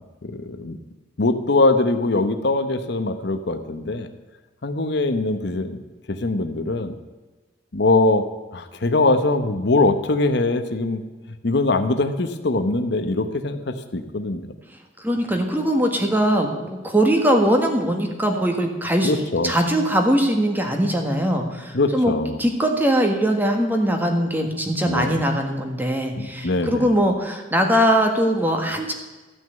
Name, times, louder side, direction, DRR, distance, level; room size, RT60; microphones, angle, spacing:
voice 1, 0.2-0.8 1.2-4.1 4.6-5.8 6.1-6.9 7.7-8.3 8.5-11.0 11.4-14.5 19.0-19.5 21.7-22.4 24.8-25.1 26.2-26.9, left 2 dB, 60° left, 8 dB, 0.9 m, -22 dB
voice 2, 15.0-19.1 19.4-22.1 22.4-28.9, equal, 10° right, 3 dB, 1.6 m, -21 dB
14.0 x 6.3 x 9.1 m, 1.3 s
head